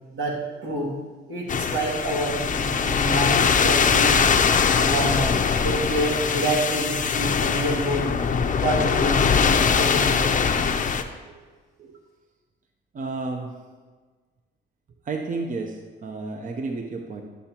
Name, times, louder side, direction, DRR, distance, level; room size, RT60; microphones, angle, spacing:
voice 1, 0.1-0.9 1.3-4.2 4.8-5.3 5.6-8.1 8.6-9.4 9.7-10.5, right 1 dB, 85° right, -4 dB, 2.4 m, -27 dB
sound 1, 1.5-11.0, left 6 dB, 40° left, 0.6 m, -22 dB
voice 2, 12.9-13.5 15.0-17.2, right 3 dB, 40° right, 3 dB, 0.7 m, -31 dB
11.5 x 6.8 x 2.9 m, 1.4 s
cardioid pair, 90°, 20 cm